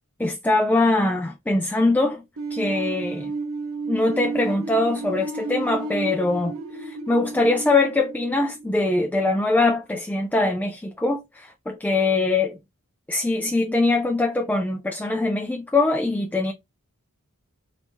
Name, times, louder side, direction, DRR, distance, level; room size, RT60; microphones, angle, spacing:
voice 1, 0.2-2.2 2.5-3.3 3.9-12.6 13.1-16.5, left 2 dB, 10° left, 0.3 m, -22 dB
sound 1, 2.4-9.2, right 3 dB, 65° right, 0.8 m, -32 dB
2.9 x 2.7 x 3.3 m
head